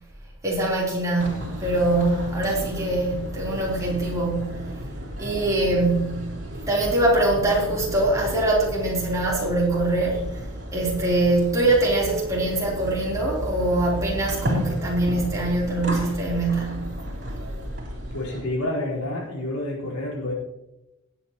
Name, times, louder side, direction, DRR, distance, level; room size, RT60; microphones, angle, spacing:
voice 1, 0.4-4.7 5.2-6.3 6.7-10.4 10.7-16.9, right 2 dB, 15° right, -5 dB, 3.6 m, -23 dB
sound 1, 1.2-18.4, equal, 50° right, 3.4 m, -33 dB
voice 2, 18.1-20.3, left 1 dB, 90° left, -4 dB, 4.6 m, -29 dB
19.0 x 8.4 x 3.1 m, 0.95 s
head